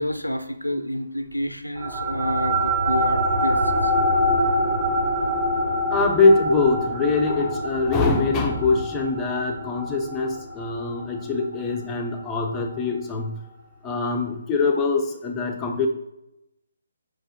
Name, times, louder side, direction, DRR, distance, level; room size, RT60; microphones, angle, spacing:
voice 1, 0.0-3.9 4.3-4.8, equal, 90° left, 9 dB, 0.6 m, -29 dB
sound 1, 1.8-12.6, equal, 45° right, 1.8 m, -25 dB
voice 2, 5.7-13.4 13.8-15.9, left 3 dB, 15° left, 1 dB, 0.8 m, -23 dB
4.8 x 4.6 x 4.5 m, 0.88 s
figure-of-eight pair, 140°, 0 cm